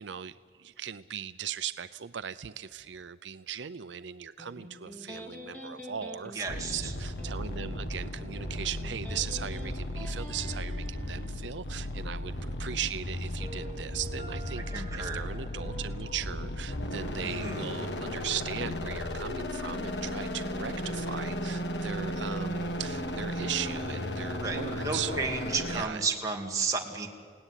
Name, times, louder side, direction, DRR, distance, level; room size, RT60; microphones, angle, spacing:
voice 1, 0.0-25.3 25.7-26.0, right 8 dB, 85° right, 13 dB, 0.6 m, -38 dB
Electric guitar, 4.4-11.4, equal, 10° left, 3.0 m, -47 dB
voice 2, 6.3-6.9 14.6-15.2 17.2-17.7 24.4-27.1, right 4 dB, 20° right, 0 dB, 2.5 m, -33 dB
sound 1, 6.5-25.8, left 1 dB, 75° left, 1.7 m, -35 dB
Piano, 13.4-18.3, right 1 dB, 45° left, 4.1 m, -49 dB
29.0 x 17.5 x 10.0 m, 2.1 s
head